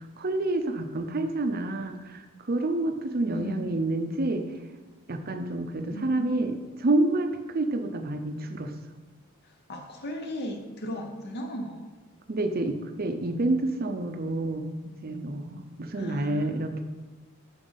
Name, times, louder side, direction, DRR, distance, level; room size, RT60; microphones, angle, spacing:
voice 1, 0.2-2.2 2.5-4.5 5.1-6.5 6.8-8.7 12.3-16.8, right 2 dB, 45° right, 7 dB, 0.6 m, -28 dB
voice 2, 3.3-3.6 5.9-6.4 9.4-11.9 15.9-16.6, equal, 50° left, 4 dB, 0.8 m, -36 dB
7.3 x 6.1 x 4.0 m, 1.3 s
head